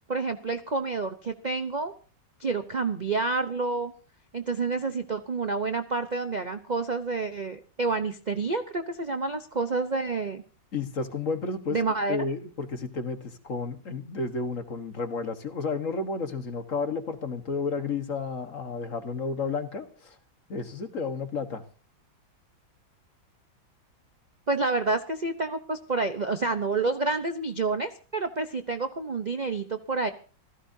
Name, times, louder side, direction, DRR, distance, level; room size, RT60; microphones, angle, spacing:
voice 1, 0.1-1.9 2.4-3.9 4.3-10.4 11.7-12.2 24.5-30.1, right 3 dB, 45° right, 8 dB, 0.6 m, -29 dB
voice 2, 10.7-11.8 12.1-20.1 20.5-21.6, left 4 dB, 45° left, 8 dB, 1.7 m, -32 dB
25.5 x 16.0 x 2.8 m, 0.39 s
omnidirectional pair, 2.1 m